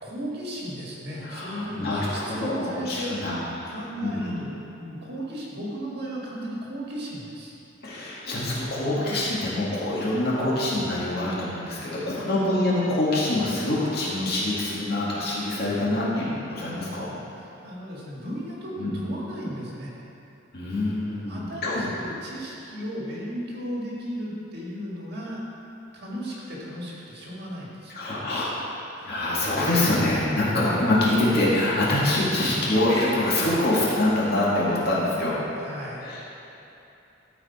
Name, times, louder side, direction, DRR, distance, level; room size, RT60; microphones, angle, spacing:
voice 1, 0.0-7.5 17.4-19.9 21.3-25.4 25.9-28.0 29.0-29.1 30.5-30.8 35.5-36.0, equal, 50° right, -5 dB, 1.7 m, -35 dB
voice 2, 1.2-3.7 4.0-4.3 7.8-17.1 18.8-19.0 20.5-21.9 27.9-28.7 29.0-35.4 36.0-36.2, left 1 dB, 50° left, -7 dB, 2.0 m, -25 dB
13.0 x 4.8 x 4.3 m, 2.9 s
head